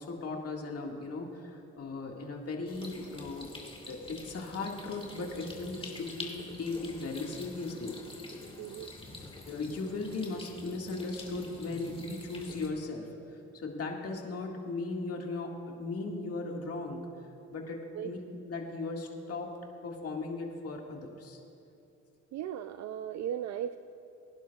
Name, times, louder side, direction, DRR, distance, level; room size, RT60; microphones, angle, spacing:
voice 1, 0.0-3.5 3.9-8.3 9.5-17.1 17.5-18.2 18.5-19.5 19.8-21.4, left 3 dB, 50° left, 0 dB, 1.9 m, -37 dB
sound 1, 2.7-12.7, left 2 dB, 20° left, 2.1 m, -46 dB
voice 2, 8.6-8.9 17.9-18.1 22.3-23.8, right 10 dB, 65° right, 10 dB, 0.4 m, -37 dB
23.5 x 11.0 x 2.4 m, 2.9 s
cardioid pair, 90°, 30 cm